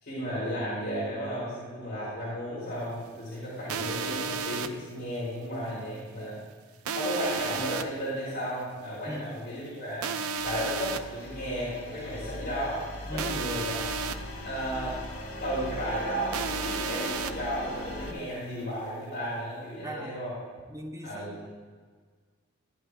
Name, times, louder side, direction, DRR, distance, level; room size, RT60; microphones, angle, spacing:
voice 1, 0.0-6.4 6.9-10.1 10.4-12.8 13.1-13.9 14.4-15.0 15.4-20.3 21.0-21.5, equal, 50° left, -9 dB, 3.0 m, -34 dB
sound 1, 3.7-4.7 6.9-7.8 10.0-11.0 13.2-14.2 16.3-17.3, right 5 dB, 90° right, 0.5 m, -32 dB
voice 2, 9.1-9.5 13.1-13.4 18.1-18.3 19.8-20.2 20.7-21.5, equal, 15° right, 4 dB, 0.7 m, -40 dB
sound 2, 10.3-18.1, left 1 dB, 75° left, 1.2 m, -40 dB
14.0 x 9.4 x 2.4 m, 1.6 s
head